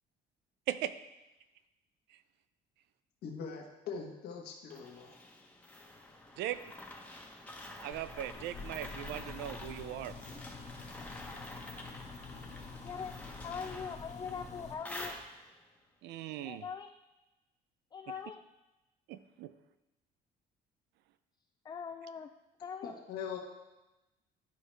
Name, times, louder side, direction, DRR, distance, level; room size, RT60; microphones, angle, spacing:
voice 1, 3.2-5.1 22.8-23.4, left 6 dB, 70° left, -1 dB, 1.4 m, -42 dB
sound 1, 4.7-15.7, left 1 dB, 10° left, 1.1 m, -48 dB
voice 2, 7.8-10.1 16.0-16.6 19.1-19.5, right 12 dB, 85° right, 13 dB, 0.5 m, -38 dB
sound 2, 7.9-14.7, left 4 dB, 40° left, 1.3 m, -48 dB
voice 3, 12.7-13.1 13.4-15.1 16.4-16.9 17.9-18.4 21.6-22.3 22.6-22.9, left 6 dB, 25° left, 7 dB, 0.4 m, -42 dB
11.5 x 4.8 x 3.3 m, 1.0 s
cardioid pair, 110°, 17 cm